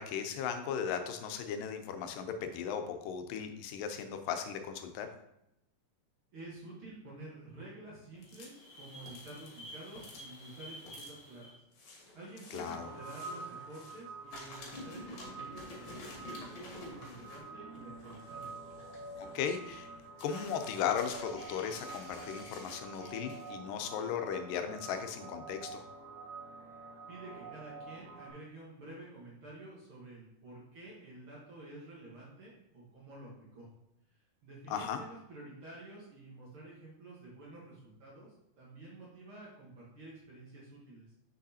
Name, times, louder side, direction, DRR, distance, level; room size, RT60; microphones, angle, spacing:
voice 1, 0.0-5.1 12.5-12.9 19.2-19.9 20.2-25.9 34.7-35.0, left 7 dB, 90° left, 6 dB, 2.3 m, -37 dB
voice 2, 6.3-11.5 12.1-18.5 27.1-33.7 34.4-41.1, right 2 dB, 55° right, -5 dB, 1.6 m, -50 dB
sound 1, 8.2-14.0 14.3-23.5, left 1 dB, 60° left, 2.3 m, -50 dB
sound 2, 12.5-28.3, right 3 dB, 90° right, 1.1 m, -48 dB
6.3 x 6.1 x 2.8 m, 0.83 s
omnidirectional pair, 3.8 m